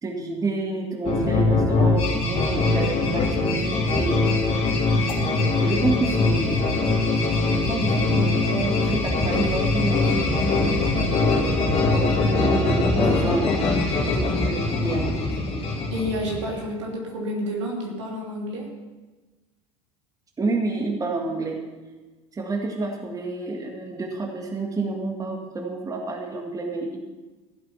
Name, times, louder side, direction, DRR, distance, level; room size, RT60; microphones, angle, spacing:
voice 1, 0.0-4.7 5.6-6.7 7.5-10.4 11.9-13.6 14.1-15.3 20.4-21.6 22.3-27.0, right 2 dB, 25° right, 2 dB, 1.9 m, -29 dB
sound 1, 1.0-16.6, left 3 dB, 40° left, 2.3 m, -22 dB
voice 2, 15.9-18.7, equal, 75° right, -2 dB, 3.0 m, -29 dB
14.5 x 8.0 x 5.7 m, 1.2 s
figure-of-eight pair, 70°, 15 cm